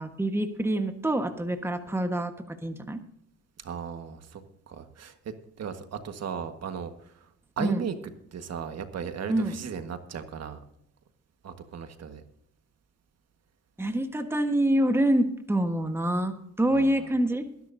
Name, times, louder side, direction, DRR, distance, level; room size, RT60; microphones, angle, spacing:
voice 1, 0.0-3.0 7.6-7.8 9.3-9.6 13.8-17.5, right 1 dB, 10° right, 6 dB, 1.4 m, -26 dB
voice 2, 3.6-7.3 7.6-7.9 8.3-10.6 11.4-12.2 16.7-17.1, right 7 dB, 55° right, 7 dB, 1.6 m, -37 dB
21.5 x 10.5 x 2.7 m, 0.74 s
cardioid pair, 90°, 30 cm